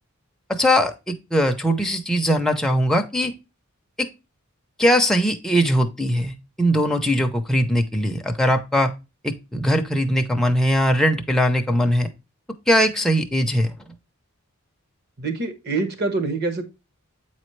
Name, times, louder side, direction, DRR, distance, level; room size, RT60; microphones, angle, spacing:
voice 1, 0.5-3.3 4.0-4.1 4.8-8.9 9.2-12.1 12.7-13.7, equal, ahead, 3 dB, 0.6 m, -20 dB
voice 2, 15.2-16.6, right 3 dB, 45° right, 7 dB, 1.1 m, -25 dB
8.4 x 4.2 x 3.1 m, 0.27 s
head